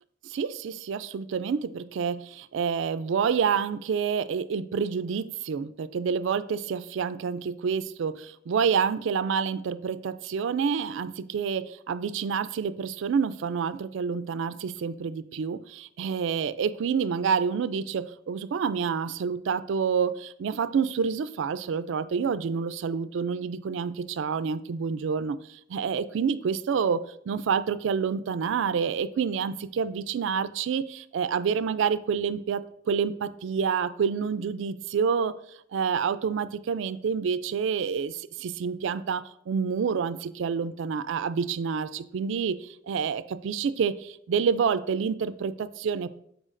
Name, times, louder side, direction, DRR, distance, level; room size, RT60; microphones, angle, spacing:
voice 1, 0.2-35.3 35.7-46.1, right 6 dB, 65° right, 15 dB, 0.3 m, -28 dB
12.5 x 4.7 x 2.5 m, 0.71 s
head